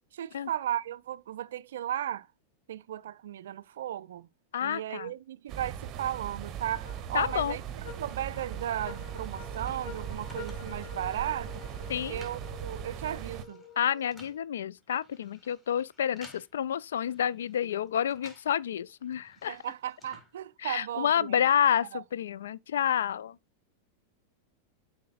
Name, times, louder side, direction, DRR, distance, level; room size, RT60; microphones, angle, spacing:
voice 1, 0.1-2.3 2.7-4.3 4.6-7.6 8.0-11.5 12.1-13.6 19.5-21.4 21.9-22.0, right 11 dB, 60° right, 0.4 m, -35 dB
voice 2, 4.5-5.1 7.1-7.6 11.9-12.3 13.8-19.6 20.6-23.4, left 9 dB, 65° left, 0.3 m, -29 dB
sound 1, 5.5-13.5, right 9 dB, 35° right, 0.8 m, -39 dB
sound 2, 6.8-14.4, left 6 dB, 40° left, 2.1 m, -48 dB
sound 3, 8.6-18.6 18.9-20.9, left 1 dB, 15° left, 2.8 m, -56 dB
12.0 x 4.7 x 2.4 m
figure-of-eight pair, 90°, 0 cm